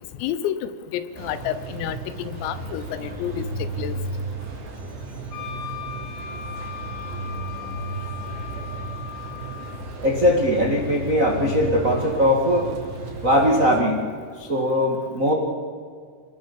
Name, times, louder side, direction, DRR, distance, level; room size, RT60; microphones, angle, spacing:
voice 1, 0.2-4.0, left 11 dB, 85° left, 13 dB, 3.7 m, -30 dB
sound 1, 1.1-13.8, right 3 dB, 55° right, 4.0 m, -34 dB
Wind instrument woodwind instrument, 5.3-9.8, left 9 dB, 70° left, 3.0 m, -37 dB
voice 2, 10.0-12.7 13.2-14.0 14.4-15.3, equal, 70° right, 0 dB, 0.7 m, -20 dB
27.0 x 19.0 x 7.1 m, 2.1 s
omnidirectional pair, 5.9 m